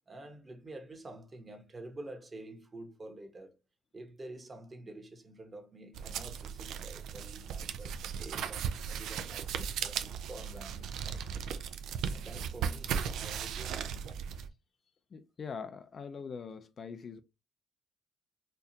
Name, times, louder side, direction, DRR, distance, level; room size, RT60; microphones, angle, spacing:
voice 1, 0.1-3.5 3.9-11.2 12.1-13.9, right 2 dB, 30° right, 1.1 m, -48 dB
sound 1, 5.9-14.5, right 7 dB, 80° right, 0.4 m, -37 dB
voice 2, 15.1-17.2, left 5 dB, 50° left, 0.5 m, -43 dB
4.4 x 2.4 x 2.7 m
cardioid pair, 90°, 0 cm